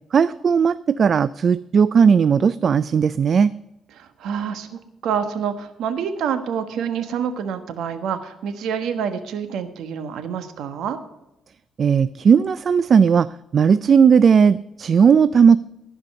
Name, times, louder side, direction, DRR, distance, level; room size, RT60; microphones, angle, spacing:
voice 1, 0.1-3.5 11.8-15.6, right 6 dB, 50° right, 16 dB, 0.3 m, -16 dB
voice 2, 4.0-11.0, right 7 dB, 80° right, 9 dB, 1.3 m, -27 dB
15.5 x 5.3 x 6.6 m, 0.91 s
cardioid pair, 90°, 0 cm